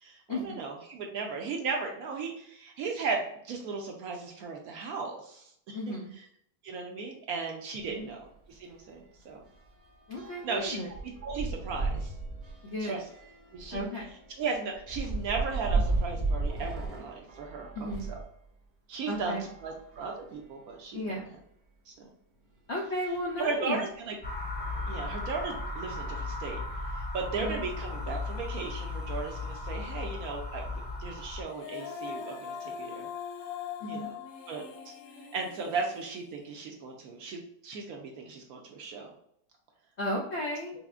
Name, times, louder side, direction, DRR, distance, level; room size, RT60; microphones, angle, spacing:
voice 1, 0.0-5.8 6.6-9.4 10.4-10.8 11.2-12.1 12.8-13.0 13.5-13.8 14.4-18.2 18.9-21.3 21.9-22.1 23.4-24.2 24.9-26.6 26.9-33.1 33.9-34.1 34.5-34.9 35.2-39.1, right 4 dB, 70° right, 1 dB, 1.0 m, -36 dB
voice 2, 5.7-6.2 8.0-8.1 10.1-10.9 12.6-13.0 13.7-14.1 17.7-18.1 19.1-19.5 20.9-21.3 22.7-23.8 27.4-27.6 33.8-34.1 40.0-40.7, left 1 dB, 70° left, -2 dB, 0.6 m, -34 dB
sound 1, 7.8-8.0 8.3-8.5 8.8-18.3 19.0-20.3 21.0-21.1 21.3-21.4 23.1-23.2 23.9-24.2 24.5-25.8, right 3 dB, 30° right, 1.0 m, -35 dB
sound 2, 24.2-31.4, left 2 dB, 10° left, 0.4 m, -36 dB
Female singing, 31.5-36.7, left 7 dB, 90° left, 1.2 m, -41 dB
5.6 x 2.0 x 2.4 m, 0.68 s
omnidirectional pair, 1.9 m